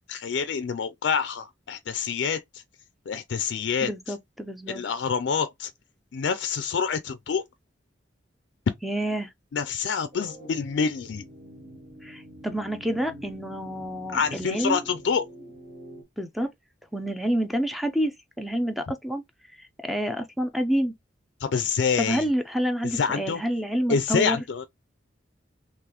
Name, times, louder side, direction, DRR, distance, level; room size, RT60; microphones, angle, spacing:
voice 1, 0.1-2.6 3.1-4.2 4.7-5.7 6.1-7.4 9.5-11.2 14.1-15.3 21.4-22.3 22.8-23.4 23.9-24.6, left 6 dB, 70° left, 0.4 m, -27 dB
voice 2, 3.8-4.8 8.8-9.3 12.0-14.8 16.2-16.5 16.9-19.2 19.5-20.9 22.0-24.4, equal, ahead, 0.4 m, -28 dB
sound 1, 10.1-16.0, equal, 35° right, 1.6 m, -45 dB
3.9 x 2.9 x 2.9 m
head